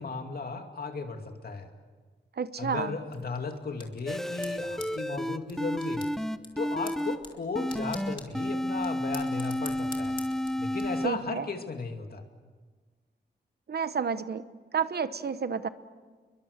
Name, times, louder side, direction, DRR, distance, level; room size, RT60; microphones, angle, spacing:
voice 1, 0.0-1.7 2.6-6.1 6.6-10.2 10.6-12.2, left 4 dB, 55° left, 5 dB, 2.5 m, -35 dB
voice 2, 2.4-2.9 11.0-11.5 13.7-14.4 14.7-15.7, right 6 dB, 60° right, 13 dB, 1.0 m, -30 dB
sound 1, 3.1-10.9, left 2 dB, 30° left, 3.0 m, -48 dB
sound 2, 4.1-7.2 7.5-11.1, left 1 dB, ahead, 0.7 m, -31 dB
29.5 x 22.5 x 6.7 m, 1.4 s
wide cardioid pair, 130°, 18 cm